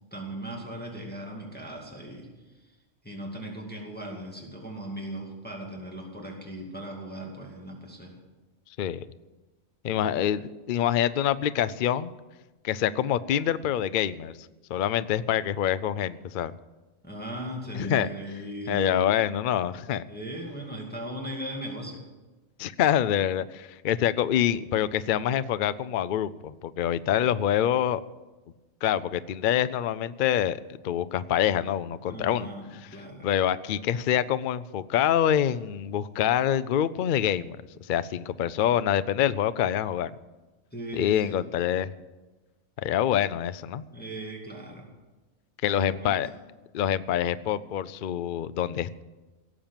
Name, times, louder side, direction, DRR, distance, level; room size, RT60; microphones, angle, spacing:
voice 1, 0.1-2.8 3.0-8.1 17.0-19.0 20.1-22.0 32.1-33.3 40.7-41.5 43.9-44.9 45.7-46.3, right 1 dB, 5° left, -1 dB, 2.2 m, -38 dB
voice 2, 9.8-12.1 12.6-14.3 14.7-16.5 17.7-18.1 18.7-20.0 22.6-28.0 28.8-32.5 33.2-37.6 37.9-40.1 40.9-41.9 42.8-43.8 45.6-46.3 46.7-49.0, left 10 dB, 65° left, 15 dB, 0.5 m, -26 dB
17.5 x 7.3 x 8.9 m, 1.2 s
omnidirectional pair, 1.4 m